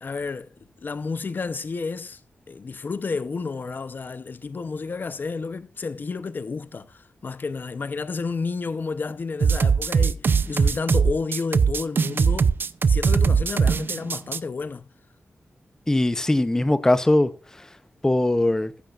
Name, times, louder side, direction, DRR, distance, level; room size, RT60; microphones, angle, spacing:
voice 1, 0.0-0.5 0.8-2.2 2.5-12.5 12.9-14.9, left 4 dB, 45° left, 0.7 m, -31 dB
sound 1, 9.4-14.4, right 5 dB, 50° right, 0.6 m, -20 dB
voice 2, 15.9-17.3 17.6-17.7 18.0-18.7, left 1 dB, 10° left, 0.7 m, -20 dB
14.5 x 13.0 x 2.5 m
wide cardioid pair, 175°, 4 cm